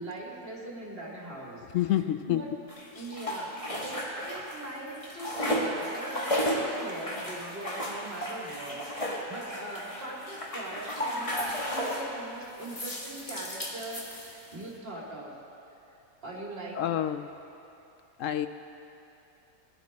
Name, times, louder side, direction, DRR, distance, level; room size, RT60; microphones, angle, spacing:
voice 1, 0.0-1.6 2.3-2.5 3.0-15.4 16.2-16.8, right 2 dB, 40° right, -3 dB, 2.5 m, -41 dB
voice 2, 1.7-2.6 2.9-3.1 16.7-17.3 18.2-18.5, left 12 dB, 70° left, 10 dB, 0.8 m, -28 dB
sound 1, 2.7-4.6 4.9-12.1 12.6-14.6, equal, 25° left, 1.6 m, -34 dB
21.0 x 11.0 x 4.2 m, 2.8 s
omnidirectional pair, 1.5 m